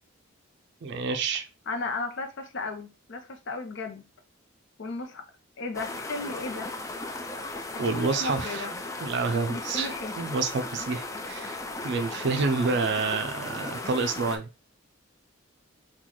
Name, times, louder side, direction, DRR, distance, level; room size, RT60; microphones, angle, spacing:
voice 1, 0.8-1.4 7.8-8.7 9.0-11.6 11.8-14.5, right 4 dB, 60° right, 0.4 m, -28 dB
voice 2, 1.7-4.1 4.8-5.2 5.6-6.7 7.7-8.7 9.5-10.2, left 3 dB, 60° left, 0.6 m, -35 dB
sound 1, 5.7-14.4, left 2 dB, 15° left, 0.3 m, -36 dB
3.9 x 2.3 x 2.9 m
head